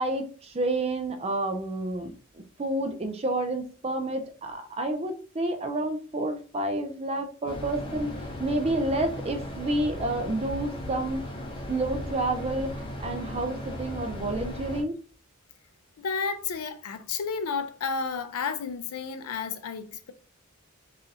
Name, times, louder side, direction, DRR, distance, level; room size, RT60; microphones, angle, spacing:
voice 1, 0.0-2.1 2.6-8.1 8.4-11.3 11.7-15.0, right 2 dB, 30° right, 0.4 m, -29 dB
sound 1, 7.5-14.8, left 1 dB, 20° left, 0.7 m, -37 dB
voice 2, 16.0-20.1, left 5 dB, 85° left, 0.5 m, -32 dB
4.9 x 2.5 x 2.7 m
head